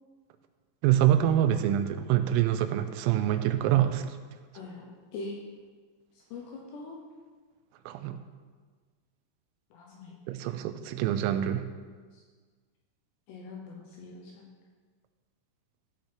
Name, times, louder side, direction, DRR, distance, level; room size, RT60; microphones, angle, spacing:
voice 1, 0.8-4.1 7.9-8.2 10.3-11.7, right 11 dB, 90° right, 10 dB, 3.3 m, -25 dB
voice 2, 4.5-5.4 6.3-7.0 9.7-10.1 12.1-12.2 13.3-14.5, left 3 dB, 75° left, -1 dB, 2.6 m, -42 dB
14.0 x 5.7 x 4.3 m, 1.5 s
omnidirectional pair, 5.8 m